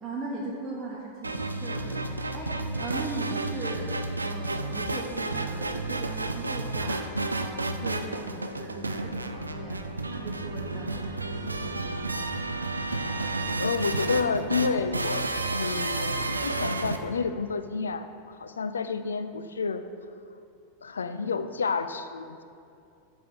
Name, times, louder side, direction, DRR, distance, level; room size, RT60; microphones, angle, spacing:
voice 1, 0.0-9.8 10.1-12.2, right 2 dB, 15° right, -7 dB, 1.0 m, -39 dB
sound 1, 1.2-17.0, right 2 dB, 80° right, 0.3 m, -31 dB
voice 2, 13.6-19.8 20.8-22.4, left 5 dB, 70° left, 10 dB, 0.3 m, -30 dB
7.6 x 3.5 x 6.0 m, 2.4 s
figure-of-eight pair, 90°, 0 cm